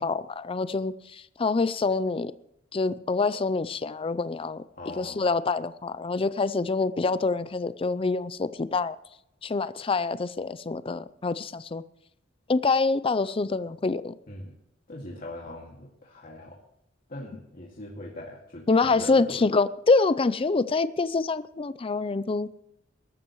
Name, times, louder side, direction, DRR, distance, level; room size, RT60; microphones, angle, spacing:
voice 1, 0.0-2.3 2.7-4.6 5.0-9.0 9.4-11.8 12.5-14.1 18.7-22.5, left 3 dB, 30° left, 15 dB, 0.5 m, -26 dB
voice 2, 4.8-5.2 14.3-14.5 14.9-16.6 17.1-19.5, left 1 dB, 45° left, -3 dB, 2.2 m, -41 dB
22.0 x 13.0 x 3.1 m, 0.78 s
head